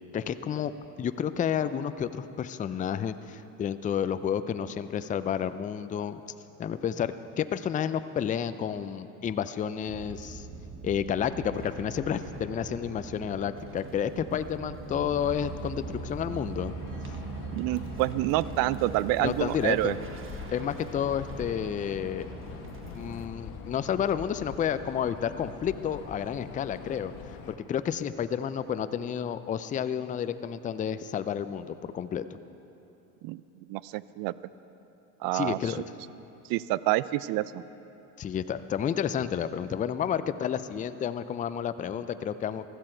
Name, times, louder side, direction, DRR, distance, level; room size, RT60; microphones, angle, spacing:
voice 1, 0.1-0.7 1.0-6.2 6.6-10.5 10.8-16.8 19.2-19.9 20.5-22.3 22.9-27.1 27.7-32.2 35.3-35.8 38.2-42.6, left 8 dB, 20° left, 12 dB, 0.4 m, -30 dB
sound 1, 9.9-23.3, right 4 dB, 30° right, 1.3 m, -41 dB
sound 2, 15.1-27.6, left 7 dB, 55° left, 1.3 m, -44 dB
voice 2, 17.5-19.9 33.2-33.4 33.7-34.3 35.2-35.7 36.5-37.6, right 16 dB, 55° right, 18 dB, 0.5 m, -28 dB
15.5 x 13.0 x 4.5 m, 3.0 s
hypercardioid pair, 90°, 43 cm